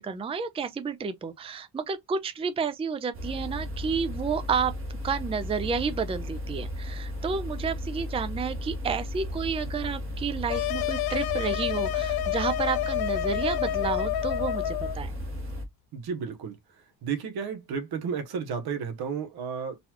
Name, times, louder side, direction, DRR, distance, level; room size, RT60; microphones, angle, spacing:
voice 1, 0.0-4.7 5.0-15.1, right 5 dB, 15° right, 0.4 m, -31 dB
sound 1, 3.1-15.6, left 1 dB, 35° right, 1.0 m, -35 dB
sound 2, 10.5-15.0, left 14 dB, 75° left, 0.6 m, -29 dB
voice 2, 15.9-16.6 17.0-19.8, right 6 dB, 75° right, 1.1 m, -32 dB
4.0 x 2.3 x 2.8 m
cardioid pair, 115°, 38 cm